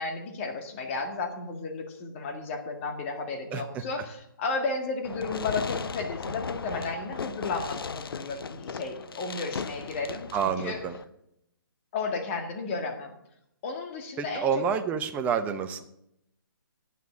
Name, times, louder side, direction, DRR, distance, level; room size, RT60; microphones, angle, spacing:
voice 1, 0.0-10.3 10.6-10.8 11.9-13.1 13.6-14.7, left 3 dB, 30° left, 4 dB, 1.8 m, -33 dB
voice 2, 3.5-3.8 10.3-10.9 14.2-15.8, right 7 dB, 10° right, 7 dB, 0.7 m, -28 dB
Fireworks, 5.0-11.0, left 5 dB, 75° left, 0.7 m, -37 dB
10.0 x 7.4 x 6.9 m, 0.79 s
hypercardioid pair, 150°, 12 cm